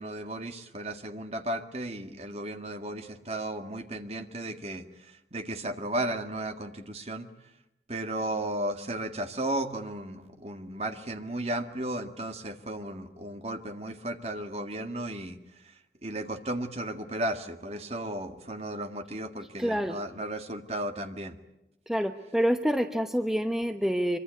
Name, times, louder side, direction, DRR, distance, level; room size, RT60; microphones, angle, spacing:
voice 1, 0.0-7.3 7.9-21.4, right 1 dB, 35° right, 6 dB, 1.9 m, -35 dB
voice 2, 19.6-20.0 21.9-24.2, equal, ahead, 7 dB, 0.9 m, -27 dB
25.0 x 24.5 x 8.3 m, 0.89 s
head